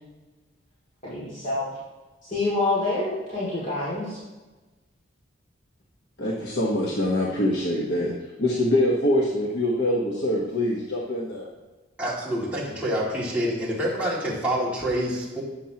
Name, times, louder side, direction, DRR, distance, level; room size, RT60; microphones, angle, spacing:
voice 1, 1.0-1.7 2.3-4.2, left 2 dB, 40° left, -10 dB, 2.2 m, -27 dB
voice 2, 6.2-8.1 8.4-11.5, left 1 dB, 55° left, -4 dB, 1.1 m, -24 dB
voice 3, 12.0-15.4, equal, 5° right, -7 dB, 2.2 m, -27 dB
11.5 x 8.1 x 2.9 m, 1.2 s
head